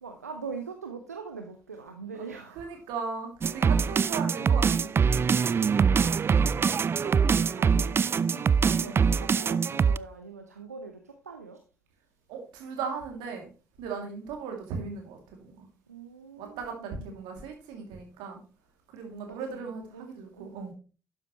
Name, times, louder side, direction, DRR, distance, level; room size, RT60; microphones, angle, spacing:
voice 1, 0.0-2.8 5.9-11.6 13.9-14.1 15.9-17.2 19.3-20.1 20.4-20.7, right 5 dB, 85° right, 0.6 m, -43 dB
voice 2, 2.6-5.2 5.5-5.8 8.7-9.0 12.3-13.5 13.8-15.7 16.4-18.4 18.9-20.7, right 5 dB, 65° right, 2.5 m, -37 dB
sound 1, 3.4-10.0, right 6 dB, 30° right, 0.3 m, -23 dB
12.0 x 7.5 x 3.0 m
figure-of-eight pair, 45°, 8 cm